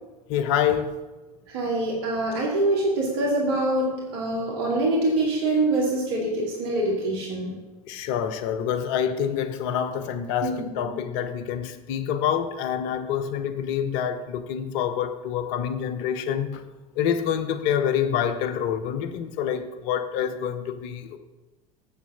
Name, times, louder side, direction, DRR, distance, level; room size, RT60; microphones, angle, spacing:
voice 1, 0.3-1.0 7.9-16.6 17.0-21.2, left 8 dB, 60° left, 0.9 m, -27 dB
voice 2, 1.5-7.6 10.4-11.0, right 2 dB, 55° right, 2.3 m, -25 dB
7.5 x 7.1 x 6.7 m
hypercardioid pair, 80°, 19 cm